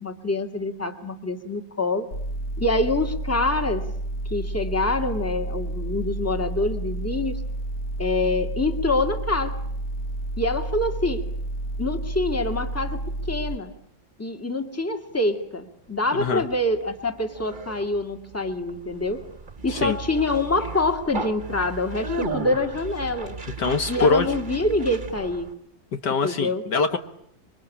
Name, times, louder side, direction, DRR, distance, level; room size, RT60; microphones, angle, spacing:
voice 1, 0.0-2.1 2.6-3.9 4.3-7.4 8.0-9.6 10.4-11.2 11.8-13.0 13.3-13.7 14.2-19.2 19.6-23.4 23.9-25.5 26.2-26.6, left 2 dB, 10° left, 6 dB, 2.2 m, -25 dB
sound 1, 2.1-13.6, right 1 dB, 45° left, 1.8 m, -30 dB
voice 2, 16.1-16.5 19.7-20.0 23.6-24.3 26.0-27.0, left 4 dB, 65° left, 8 dB, 2.0 m, -23 dB
Conversation, 16.1-25.5, right 3 dB, 25° right, 1.6 m, -35 dB
26.5 x 24.0 x 8.7 m, 0.69 s
omnidirectional pair, 2.0 m